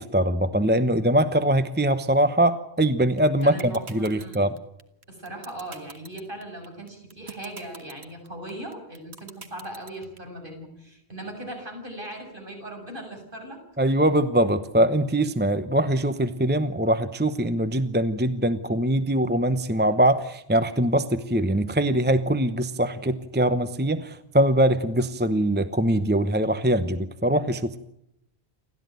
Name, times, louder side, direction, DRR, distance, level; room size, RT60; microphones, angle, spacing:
voice 1, 0.0-4.5 13.8-27.8, right 1 dB, 10° right, 11 dB, 0.9 m, -22 dB
sound 1, 3.2-10.2, right 5 dB, 85° right, 1.8 m, -43 dB
voice 2, 3.4-4.5 5.1-13.6, right 1 dB, 50° right, 2 dB, 7.3 m, -39 dB
29.0 x 13.0 x 9.3 m, 0.81 s
omnidirectional pair, 1.1 m